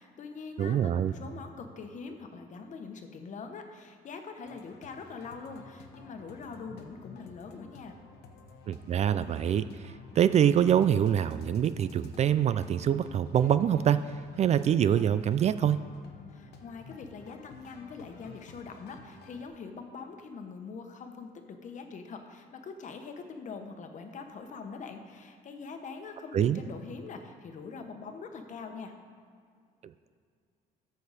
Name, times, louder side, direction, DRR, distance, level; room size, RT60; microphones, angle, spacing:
voice 1, 0.0-8.0 16.3-28.9, left 5 dB, 45° left, 5 dB, 1.1 m, -43 dB
voice 2, 0.6-1.1 8.7-14.0 14.4-15.8 26.3-26.6, right 9 dB, 40° right, 13 dB, 0.3 m, -25 dB
sound 1, 4.5-19.5, left 4 dB, 75° left, 1.0 m, -52 dB
13.5 x 6.7 x 4.2 m, 2.2 s
cardioid pair, 110°, 17 cm